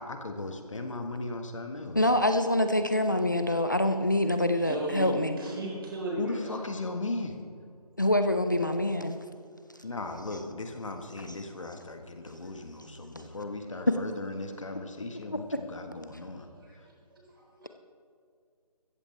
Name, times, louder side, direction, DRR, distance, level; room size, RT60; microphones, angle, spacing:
voice 1, 0.0-2.0 6.2-7.3 9.8-16.5, left 2 dB, 50° left, 5 dB, 1.5 m, -37 dB
voice 2, 1.9-5.4 8.0-9.2 13.9-14.0, left 1 dB, 30° left, 8 dB, 0.4 m, -25 dB
voice 3, 4.5-6.6 13.2-13.3 16.5-17.7, right 2 dB, 35° right, -3 dB, 3.8 m, -37 dB
16.0 x 14.5 x 3.3 m, 2.3 s
figure-of-eight pair, 170°, 20 cm